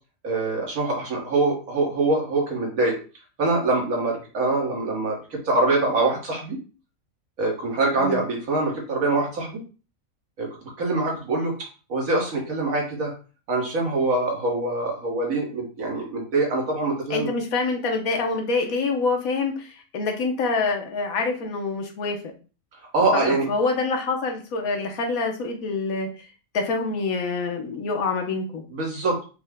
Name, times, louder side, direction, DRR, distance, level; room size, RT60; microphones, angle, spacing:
voice 1, 0.2-3.0 3.4-6.6 7.4-9.6 10.4-10.5 10.8-11.5 11.9-13.1 13.5-17.3 22.9-23.5 28.7-29.2, right 2 dB, 80° right, -1 dB, 1.9 m, -24 dB
voice 2, 17.1-22.2 23.1-26.1 26.5-28.6, left 3 dB, 80° left, 3 dB, 1.3 m, -26 dB
5.4 x 2.2 x 3.5 m, 0.35 s
omnidirectional pair, 1.5 m